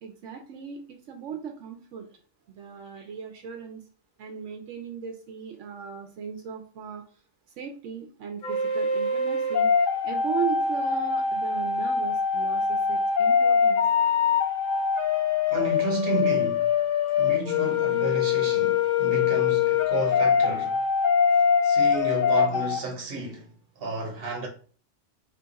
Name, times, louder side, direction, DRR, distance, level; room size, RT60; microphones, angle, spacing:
voice 1, 0.0-2.1 2.5-3.8 4.2-7.0 7.6-13.8, right 7 dB, 85° right, 0.9 m, -37 dB
sound 1, 8.4-22.8, left 6 dB, 55° left, 0.6 m, -23 dB
voice 2, 15.5-16.7 17.2-20.8 21.6-24.5, right 3 dB, 55° right, 1.1 m, -32 dB
2.8 x 2.3 x 3.9 m
omnidirectional pair, 1.2 m